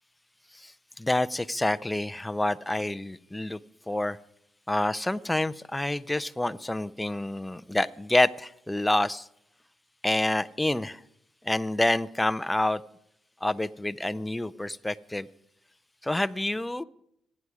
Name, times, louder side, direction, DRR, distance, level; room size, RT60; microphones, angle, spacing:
voice 1, 0.5-3.6 3.9-4.2 4.7-9.3 10.0-11.0 11.4-12.8 13.4-15.3 16.0-16.8, left 1 dB, 10° left, 14 dB, 0.5 m, -28 dB
27.0 x 9.7 x 4.9 m, 0.74 s
cardioid pair, 90°, 0 cm